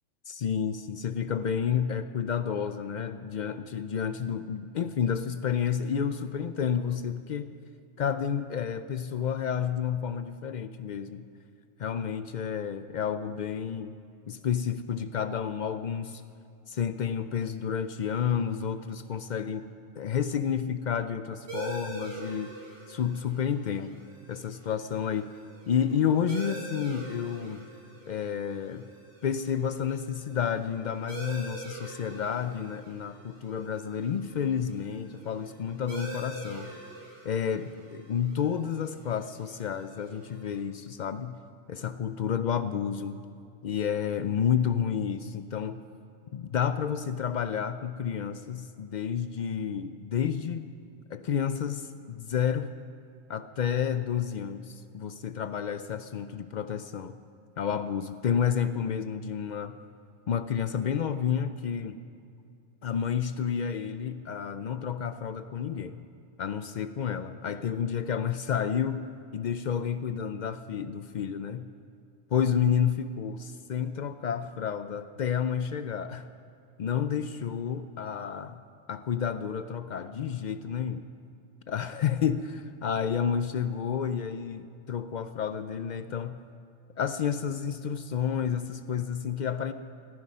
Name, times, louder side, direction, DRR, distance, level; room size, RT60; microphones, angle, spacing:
voice 1, 0.3-7.5 8.0-11.3 11.8-13.9 14.3-16.2 16.7-19.7 20.0-22.5 22.9-24.0 24.3-25.3 25.7-27.6 28.1-28.9 29.2-36.7 37.2-41.4 41.7-43.2 43.6-45.8 46.3-50.7 51.1-52.7 53.3-57.2 57.6-59.7 60.3-62.0 62.8-66.1 66.4-69.1 69.3-71.7 72.3-76.3 76.8-78.6 78.9-81.0 81.7-86.4 87.0-89.7, left 8 dB, 90° left, 10 dB, 0.4 m, -30 dB
sound 1, 21.5-40.6, right 3 dB, 80° right, 3.1 m, -45 dB
18.0 x 14.5 x 5.5 m, 2.6 s
omnidirectional pair, 1.4 m